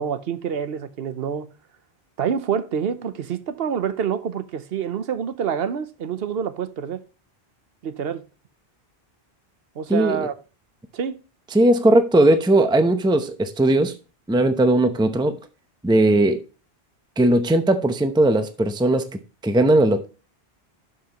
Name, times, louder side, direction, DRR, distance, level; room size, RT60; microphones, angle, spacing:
voice 1, 0.0-1.5 2.2-7.0 7.8-8.2 9.8-10.3 10.9-11.2, right 7 dB, 70° right, 1.0 m, -27 dB
voice 2, 9.9-10.3 11.5-14.0 14.3-15.4 15.8-16.4 17.2-19.1 19.4-20.1, right 1 dB, 5° right, 0.6 m, -18 dB
12.0 x 5.7 x 2.9 m
omnidirectional pair, 1.1 m